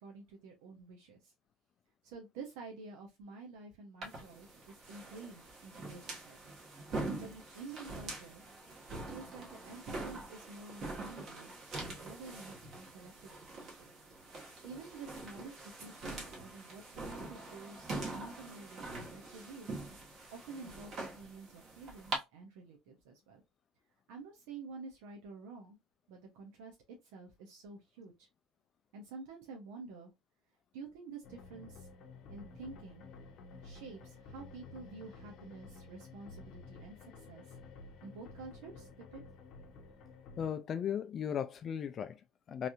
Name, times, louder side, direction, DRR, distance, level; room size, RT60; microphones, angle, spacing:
voice 1, 0.0-1.3 2.0-6.6 7.2-8.4 8.9-11.5 11.9-13.9 14.6-19.7 20.3-23.4 24.1-25.8 26.1-26.8 27.0-28.3 28.9-30.1 30.7-31.9 32.3-33.0 33.6-37.5 38.0-39.2, right 4 dB, 80° right, 0.8 m, -50 dB
sound 1, 4.0-22.2, right 2 dB, 45° right, 1.3 m, -44 dB
sound 2, 31.2-40.5, left 3 dB, 60° left, 0.7 m, -52 dB
voice 2, 40.4-42.7, left 8 dB, 40° left, 0.3 m, -37 dB
3.2 x 2.7 x 2.4 m
supercardioid pair, 115°, 0 cm